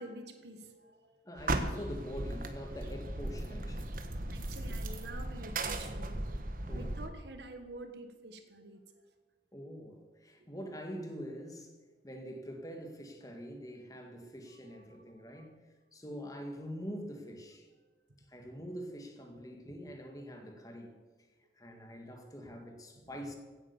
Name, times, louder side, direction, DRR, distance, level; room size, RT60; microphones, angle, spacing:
voice 1, 0.0-1.2 3.9-6.2 6.7-8.9 10.4-10.5 14.7-15.5 21.7-21.8, right 1 dB, 70° right, 7 dB, 1.5 m, -49 dB
voice 2, 1.3-4.0 6.7-6.9 9.5-11.7 12.0-15.6 15.9-17.7 18.3-20.9 21.6-23.3, equal, 20° left, 4 dB, 1.9 m, -44 dB
sound 1, 1.4-7.1, right 2 dB, 50° right, 1.3 m, -37 dB
16.0 x 9.0 x 7.1 m, 1.3 s
head